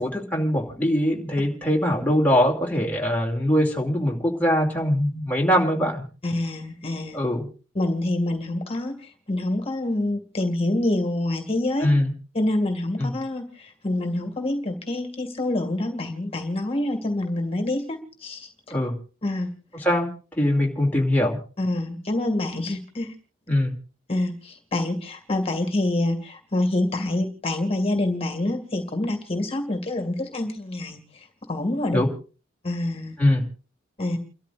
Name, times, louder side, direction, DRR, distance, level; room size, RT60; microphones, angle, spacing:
voice 1, 0.0-6.0 7.1-7.5 11.8-12.1 13.0-13.1 18.7-18.9 19.7-21.4 23.5-23.7 31.9-32.1 33.2-33.4, left 1 dB, 10° left, -1 dB, 2.7 m, -22 dB
voice 2, 6.2-7.2 7.7-11.9 12.3-18.5 19.2-19.5 21.6-23.1 24.1-32.0 32.6-33.2 34.0-34.2, left 1 dB, 30° left, 5 dB, 2.2 m, -26 dB
30.0 x 13.0 x 2.6 m, 0.37 s
head